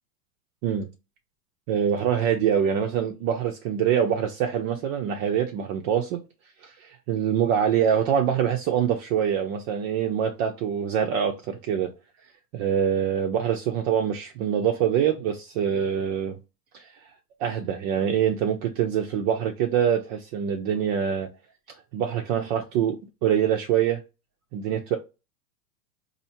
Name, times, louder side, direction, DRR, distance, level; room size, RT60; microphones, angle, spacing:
voice 1, 1.7-6.2 6.6-11.9 12.5-16.4 16.7-17.1 17.4-21.3 21.9-24.0 24.5-25.0, right 8 dB, 40° right, 0.7 m, -25 dB
4.3 x 2.7 x 2.8 m
hypercardioid pair, 110°, 48 cm